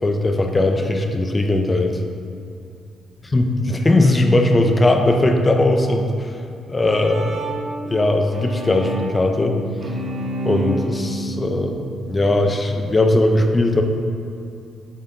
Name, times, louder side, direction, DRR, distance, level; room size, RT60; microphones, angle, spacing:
voice 1, 0.0-2.0 3.3-6.4 6.7-7.4 7.9-9.6 10.4-13.8, left 2 dB, 25° left, 4 dB, 0.6 m, -19 dB
Bowed string instrument, 6.5-12.6, right 1 dB, 55° right, 1.0 m, -30 dB
7.4 x 4.0 x 3.9 m, 2.4 s
cardioid pair, 90°, 0 cm